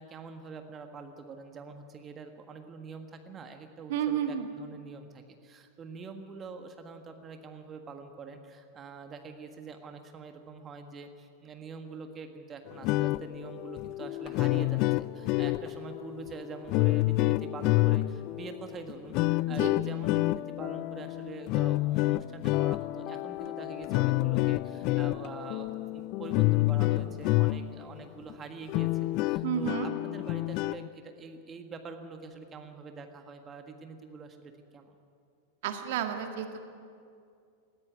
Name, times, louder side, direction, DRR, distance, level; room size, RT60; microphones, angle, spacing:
voice 1, 0.0-35.0, right 5 dB, 25° right, 6 dB, 1.6 m, -45 dB
voice 2, 3.9-4.5 19.6-19.7 29.4-29.9 35.6-36.8, right 10 dB, 50° right, 5 dB, 2.0 m, -31 dB
sound 1, 12.7-27.9 28.3-28.4 28.7-30.9, left 19 dB, 40° left, 0.4 m, -28 dB
19.0 x 16.5 x 9.4 m, 2.4 s
figure-of-eight pair, 90°, 0 cm